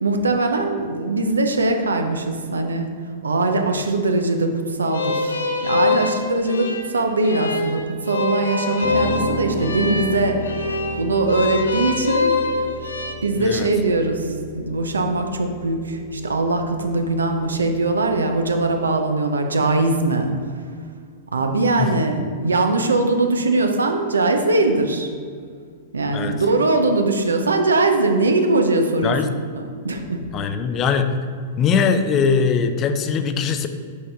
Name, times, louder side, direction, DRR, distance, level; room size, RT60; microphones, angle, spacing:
voice 1, 0.0-2.9 3.2-12.3 13.2-14.3 14.5-20.3 21.3-25.1 25.9-29.2 29.8-30.2, right 2 dB, 85° right, 5 dB, 0.6 m, -21 dB
sound 1, 4.9-13.1, left 4 dB, 85° left, 0.6 m, -25 dB
Piano, 8.8-18.9, equal, 10° left, 1.2 m, -34 dB
voice 2, 13.4-13.7 21.8-21.9 26.1-26.4 29.0-29.3 30.3-31.1 31.6-33.7, left 6 dB, 35° left, 8 dB, 0.5 m, -21 dB
6.4 x 4.3 x 3.4 m, 2.1 s
hypercardioid pair, 105°, 0 cm